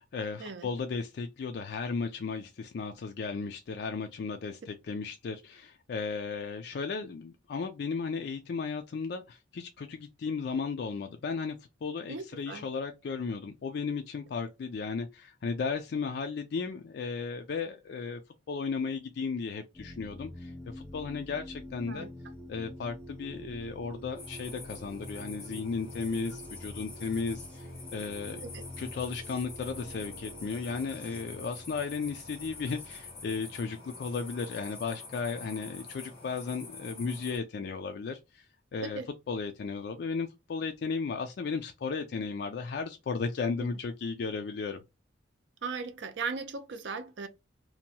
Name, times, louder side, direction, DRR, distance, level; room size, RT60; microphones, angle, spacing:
voice 1, 0.0-18.2 18.5-22.1 22.5-28.4 28.8-38.5 38.7-39.0 39.3-44.8, left 5 dB, 60° left, 0.3 m, -35 dB
voice 2, 12.1-12.7 21.9-22.1 28.4-28.6 38.8-39.1 43.6-43.7 45.6-47.3, right 4 dB, 75° right, 0.5 m, -38 dB
sound 1, 19.7-34.8 36.0-36.6, equal, 10° left, 1.0 m, -47 dB
sound 2, 24.2-37.4, left 4 dB, 35° left, 0.9 m, -46 dB
sound 3, 29.7-35.7, right 2 dB, 60° right, 1.2 m, -58 dB
2.8 x 2.2 x 2.7 m
head